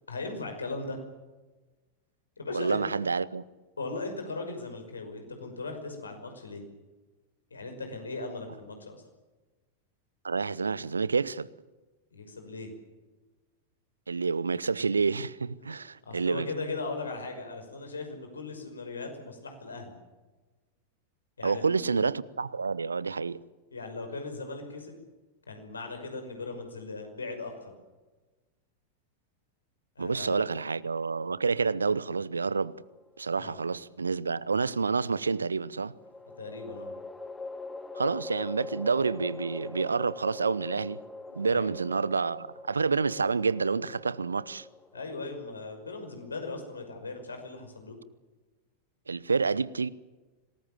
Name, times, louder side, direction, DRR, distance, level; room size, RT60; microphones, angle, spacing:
voice 1, 0.1-1.0 2.4-2.8 3.8-6.6 7.5-9.0 12.1-12.7 15.6-15.8 16.0-19.9 21.4-21.9 23.7-25.0 25.5-27.7 30.0-30.5 33.4-33.6 36.4-36.9 41.5-41.7 44.9-48.0, left 3 dB, 75° left, 5.7 m, -38 dB
voice 2, 2.5-3.4 10.2-11.5 14.1-16.5 21.4-23.4 30.0-32.8 33.2-35.9 37.9-41.0 41.3-44.7 49.1-49.9, right 4 dB, 75° right, 0.7 m, -28 dB
sound 1, 32.9-33.7 36.0-47.3, left 2 dB, 10° left, 1.7 m, -43 dB
26.5 x 19.5 x 7.3 m
figure-of-eight pair, 90°, 0 cm